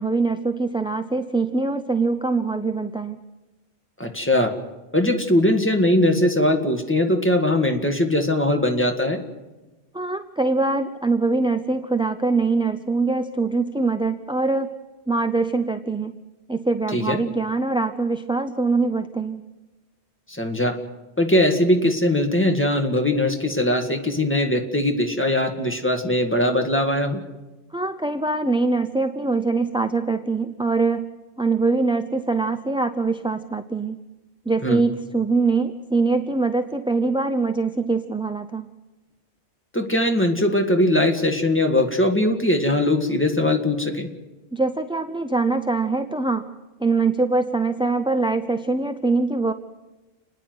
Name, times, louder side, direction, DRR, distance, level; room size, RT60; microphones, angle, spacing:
voice 1, 0.0-3.2 9.9-14.7 15.1-16.2 16.5-19.4 27.7-34.0 34.5-38.7 44.5-46.5 46.8-49.5, right 3 dB, 5° right, 7 dB, 0.5 m, -23 dB
voice 2, 4.0-4.5 4.9-9.2 16.9-17.2 20.3-20.8 21.2-27.2 34.6-34.8 39.7-44.1, left 1 dB, 10° left, 3 dB, 2.0 m, -20 dB
30.0 x 10.0 x 9.4 m, 1.1 s
omnidirectional pair, 1.2 m